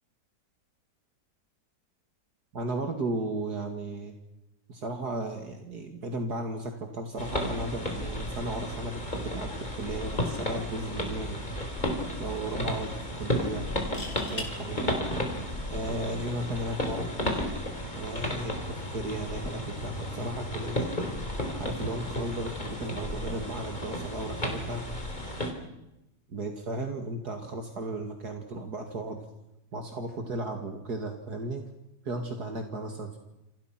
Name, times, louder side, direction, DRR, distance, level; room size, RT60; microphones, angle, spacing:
voice 1, 2.5-4.1 4.7-11.4 12.2-13.7 14.3-15.0 15.7-17.4 17.9-20.9 21.6-24.8 26.3-29.2 29.7-31.7 32.0-33.2, right 2 dB, 65° right, 4 dB, 2.8 m, -35 dB
sound 1, 7.2-25.5, left 1 dB, 25° left, 4.2 m, -33 dB
sound 2, 10.8-11.1 11.4-11.5 13.7-14.5 16.3-16.6, left 2 dB, 45° left, 5.2 m, -39 dB
29.0 x 26.0 x 6.0 m, 0.89 s
omnidirectional pair, 1.9 m